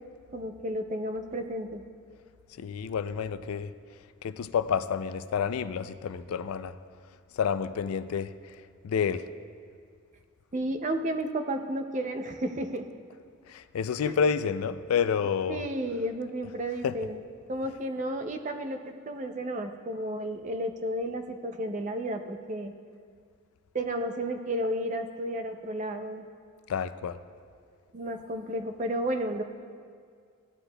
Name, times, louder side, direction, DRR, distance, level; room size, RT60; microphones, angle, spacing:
voice 1, 0.3-1.8 10.5-12.9 14.0-14.1 15.5-17.2 17.5-22.7 23.7-26.3 27.9-29.4, right 1 dB, 35° right, 0.5 m, -32 dB
voice 2, 2.6-3.7 4.2-6.7 7.4-8.3 8.8-9.3 13.5-15.7 16.8-16.9 26.7-27.2, left 6 dB, 85° left, 0.3 m, -29 dB
15.0 x 9.6 x 2.2 m
head